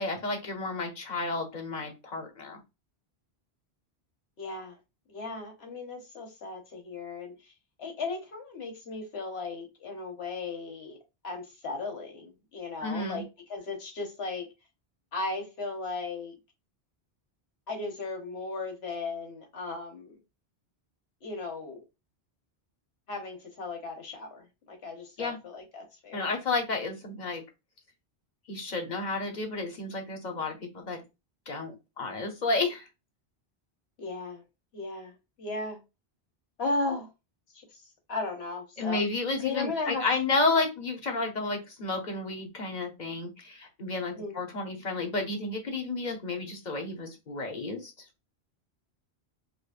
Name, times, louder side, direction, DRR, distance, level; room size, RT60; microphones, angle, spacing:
voice 1, 0.0-2.6 12.8-13.2 25.2-25.4 26.1-27.4 28.5-31.0 31.5-32.9 38.8-47.9, left 3 dB, 45° left, 1.0 m, -31 dB
voice 2, 4.4-4.8 5.1-7.3 7.8-11.0 11.2-14.5 15.1-16.4 17.7-20.2 21.2-21.8 23.1-26.3 34.0-34.4 34.7-35.1 35.4-35.8 36.6-37.1 37.5-37.6 38.1-39.0 39.4-40.0 44.1-44.3, left 3 dB, 75° left, 1.4 m, -36 dB
5.0 x 2.1 x 2.5 m
omnidirectional pair, 1.1 m